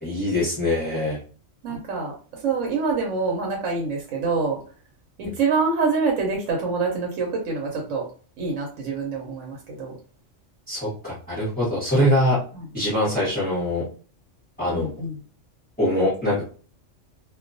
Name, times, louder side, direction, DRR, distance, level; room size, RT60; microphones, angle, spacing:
voice 1, 0.0-1.2 10.7-12.4 12.7-13.8 14.6-14.9 15.8-16.4, left 1 dB, 10° left, -10 dB, 0.8 m, -23 dB
voice 2, 1.6-2.1 2.4-4.6 5.2-8.1 8.4-9.9 11.9-12.0 12.5-12.6 14.7-15.1, right 4 dB, 90° right, -1 dB, 1.0 m, -26 dB
2.3 x 2.2 x 2.5 m, 0.40 s
omnidirectional pair, 1.3 m